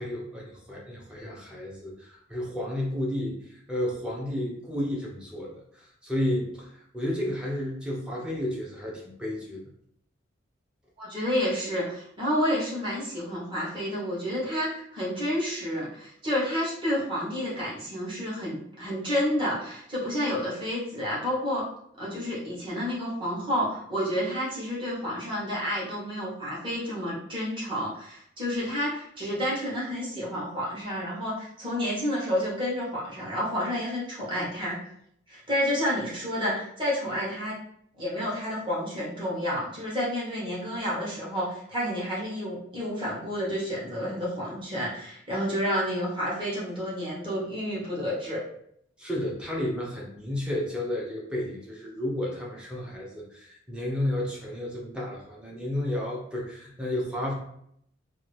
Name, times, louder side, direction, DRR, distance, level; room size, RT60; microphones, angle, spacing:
voice 1, 0.0-3.4 3.7-9.7 49.0-57.3, left 1 dB, 5° right, -3 dB, 0.7 m, -32 dB
voice 2, 11.0-21.6 22.0-34.8 35.3-37.5 38.0-48.4, equal, 25° right, -7 dB, 1.1 m, -30 dB
2.7 x 2.6 x 3.2 m, 0.71 s
head